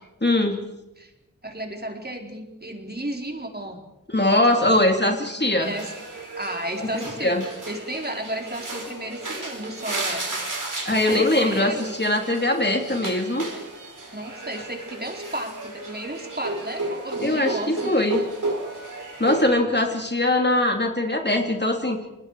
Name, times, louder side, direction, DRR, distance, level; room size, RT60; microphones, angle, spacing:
voice 1, 0.2-0.6 4.1-5.7 6.8-7.4 10.8-13.5 17.2-18.2 19.2-22.0, left 1 dB, 30° left, 3 dB, 3.0 m, -22 dB
voice 2, 1.4-3.8 4.3-4.7 5.0-5.2 5.5-5.9 6.4-7.3 7.7-10.4 10.9-11.9 14.1-17.9, right 1 dB, 30° right, 2 dB, 4.2 m, -33 dB
sound 1, 5.6-19.4, right 2 dB, 70° right, 4.9 m, -33 dB
30.0 x 20.5 x 4.9 m, 0.94 s
wide cardioid pair, 45°, 33 cm